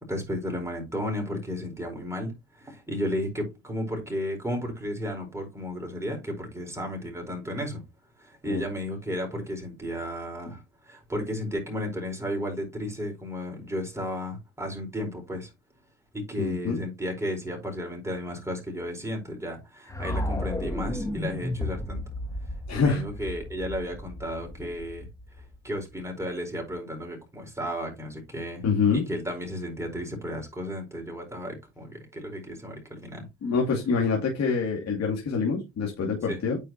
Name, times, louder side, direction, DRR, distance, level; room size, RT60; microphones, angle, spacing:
voice 1, 0.1-7.8 8.2-15.5 16.1-22.0 22.7-25.1 25.6-28.6 28.9-33.3 36.3-36.4, equal, 10° right, 4.5 m, -33 dB
voice 2, 16.4-16.8 22.7-23.0 28.6-29.0 33.4-36.6, left 5 dB, 60° left, 2.5 m, -25 dB
sound 1, 19.9-26.0, left 1 dB, 10° left, 1.2 m, -34 dB
9.2 x 4.9 x 3.0 m
cardioid pair, 90°, 30 cm